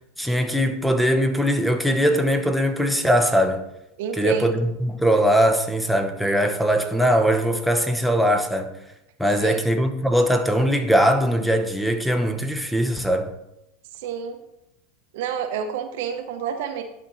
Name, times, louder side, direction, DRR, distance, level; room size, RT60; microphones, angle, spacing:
voice 1, 0.2-3.6 4.1-8.7 9.2-13.3, equal, ahead, 1.0 m, -21 dB
voice 2, 4.0-4.5 9.4-9.6 13.9-14.4 15.1-16.8, right 7 dB, 70° right, 0.8 m, -29 dB
11.5 x 4.4 x 4.1 m
hypercardioid pair, 95°, 0 cm